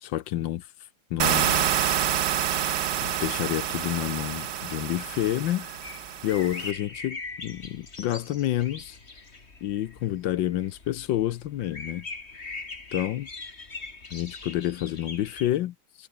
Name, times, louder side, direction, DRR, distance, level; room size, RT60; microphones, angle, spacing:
voice 1, 0.0-0.7 1.1-1.7 3.0-5.7 6.2-9.0 9.6-12.1 12.9-13.3 14.1-16.1, left 13 dB, 70° left, 1.4 m, -29 dB
sound 1, 1.2-6.7, right 10 dB, 60° right, 1.6 m, -27 dB
sound 2, 1.3-15.5, left 3 dB, 30° left, 2.8 m, -43 dB
omnidirectional pair, 2.3 m